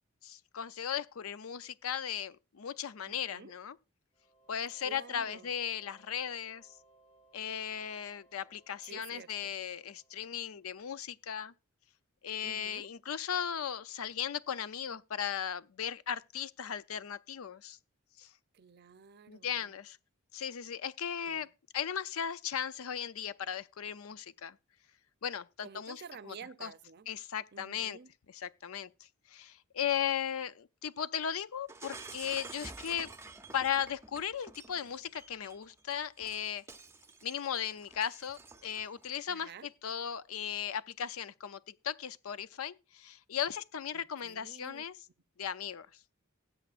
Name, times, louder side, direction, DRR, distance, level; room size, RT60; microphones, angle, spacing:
voice 1, 0.2-3.8 4.5-6.7 7.3-11.5 12.2-17.8 18.2-18.3 19.3-20.0 20.3-21.5 21.7-24.6 25.2-26.3 26.6-26.7 27.1-28.0 28.3-28.9 29.3-33.1 33.5-36.6 37.2-39.5 39.8-45.0 45.4-45.9, left 8 dB, 85° left, 0.5 m, -37 dB
voice 2, 3.1-3.5 4.8-5.5 8.9-9.5 12.4-12.9 18.5-19.7 21.2-21.5 25.6-27.1 27.5-28.1 39.3-39.7 43.9-44.8, right 6 dB, 50° right, 0.6 m, -51 dB
sound 1, 4.1-10.7, right 2 dB, 30° left, 1.5 m, -66 dB
Shatter, 31.7-39.1, right 3 dB, 15° right, 0.6 m, -50 dB
19.5 x 7.9 x 2.5 m
head